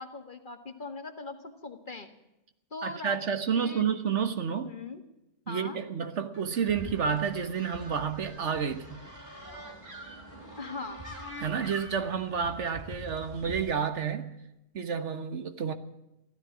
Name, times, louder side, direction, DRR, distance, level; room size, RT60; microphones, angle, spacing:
voice 1, 0.0-2.1 2.7-3.2 3.5-3.9 4.6-5.0 5.5-5.8 10.6-11.0, left 3 dB, 45° left, 1.8 m, -40 dB
voice 2, 2.8-4.7 5.5-9.0 11.4-14.4 14.7-15.7, right 7 dB, 90° right, 1.6 m, -30 dB
sound 1, 6.3-13.7, right 1 dB, 60° right, 3.7 m, -45 dB
15.5 x 13.0 x 7.3 m
omnidirectional pair, 1.2 m